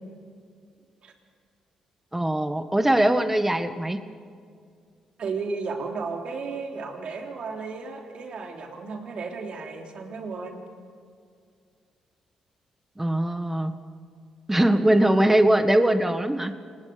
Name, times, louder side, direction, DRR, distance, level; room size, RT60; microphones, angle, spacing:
voice 1, 2.1-4.0 13.0-13.7 14.5-16.5, right 1 dB, 10° right, 9 dB, 1.6 m, -21 dB
voice 2, 5.2-10.6 14.7-15.0, right 4 dB, 60° right, 2 dB, 3.3 m, -34 dB
27.5 x 19.5 x 5.1 m, 2.2 s
hypercardioid pair, 45°, 2 cm